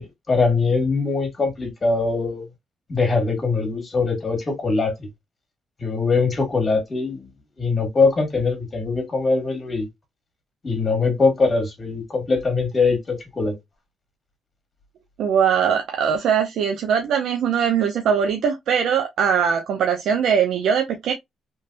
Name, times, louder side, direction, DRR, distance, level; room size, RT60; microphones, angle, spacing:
voice 1, 0.0-2.4 2.9-5.1 5.8-7.3 7.6-9.9 10.6-13.5, left 4 dB, 35° left, 1.6 m, -22 dB
voice 2, 15.2-21.1, right 7 dB, 75° right, 0.5 m, -21 dB
3.2 x 3.1 x 2.4 m
cardioid pair, 90°, 0 cm